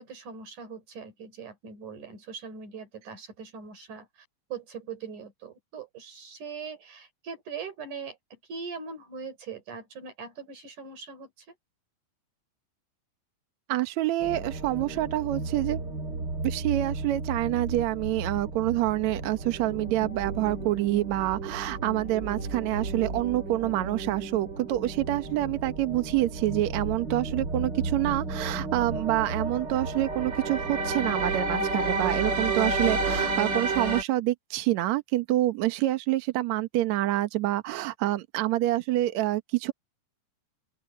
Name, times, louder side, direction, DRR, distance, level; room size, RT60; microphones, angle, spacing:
voice 1, 0.0-11.6, right 5 dB, 45° right, 5.4 m, -41 dB
voice 2, 13.7-15.8 16.4-39.7, right 15 dB, 90° right, 1.5 m, -27 dB
sound 1, 14.2-34.0, right 3 dB, 25° right, 3.4 m, -32 dB
open air
omnidirectional pair, 5.0 m